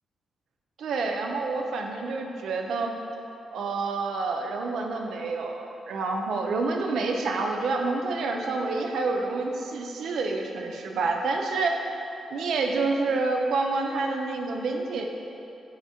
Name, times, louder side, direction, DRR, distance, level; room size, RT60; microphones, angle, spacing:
voice 1, 0.8-2.9 3.5-11.8 12.3-15.1, right 3 dB, 80° right, 2 dB, 0.3 m, -28 dB
4.2 x 2.4 x 4.1 m, 2.8 s
cardioid pair, 130°, 0 cm